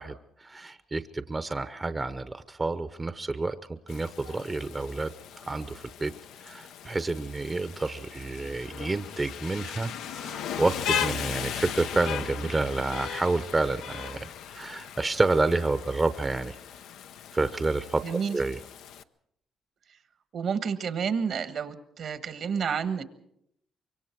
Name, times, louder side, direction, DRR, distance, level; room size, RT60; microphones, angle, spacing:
voice 1, 0.0-5.1 5.4-6.1 6.4-16.6 17.3-18.0 18.3-18.6, right 3 dB, 25° right, 11 dB, 0.8 m, -29 dB
Rain, 3.9-19.0, left 9 dB, 85° left, 0.7 m, -37 dB
voice 2, 18.0-18.4 20.3-23.0, right 6 dB, 60° right, 11 dB, 1.4 m, -30 dB
25.0 x 23.0 x 4.6 m, 0.73 s
cardioid pair, 90°, 0 cm